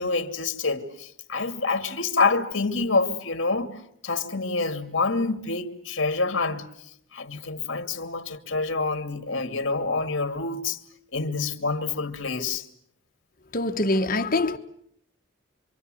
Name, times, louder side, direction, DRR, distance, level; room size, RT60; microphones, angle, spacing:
voice 1, 0.0-3.7 4.0-6.6 7.1-10.8 11.1-12.6, left 3 dB, 60° left, 2.5 m, -27 dB
voice 2, 13.5-14.6, left 2 dB, 40° left, 1.3 m, -24 dB
26.5 x 25.0 x 7.8 m
head